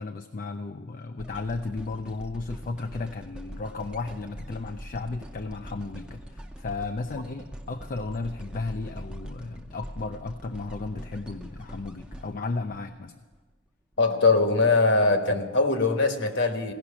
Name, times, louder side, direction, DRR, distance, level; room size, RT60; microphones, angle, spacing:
voice 1, 0.0-13.1, left 3 dB, 40° left, 7 dB, 0.4 m, -34 dB
sound 1, 1.2-13.4 13.9-14.0, equal, 5° right, 0.7 m, -43 dB
voice 2, 14.0-16.7, left 3 dB, 60° left, 6 dB, 1.3 m, -22 dB
17.0 x 5.9 x 9.9 m, 1.3 s
head